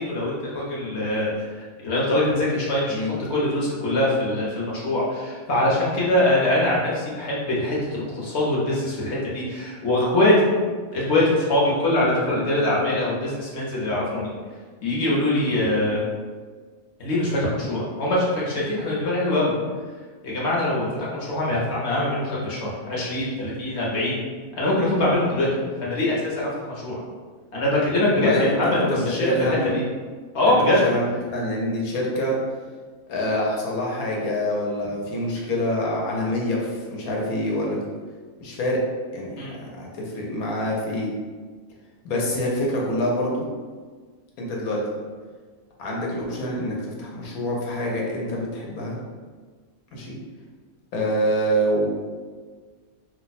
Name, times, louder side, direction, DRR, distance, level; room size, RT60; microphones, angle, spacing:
voice 1, 0.0-3.0 3.3-10.5 10.9-14.3 14.8-16.0 17.0-19.5 20.2-24.2 24.6-27.0 27.5-28.9 29.4-29.8 30.3-30.8 39.4-39.6, left 1 dB, 55° left, -5 dB, 1.0 m, -23 dB
voice 2, 28.1-29.8 30.6-32.4 33.1-37.8 38.4-38.8 39.1-39.4 39.8-41.1 42.0-43.4 44.4-44.8 45.8-49.0 49.9-50.2 50.9-51.9, equal, 85° left, -2 dB, 1.2 m, -26 dB
2.6 x 2.2 x 4.0 m, 1.5 s
omnidirectional pair, 1.5 m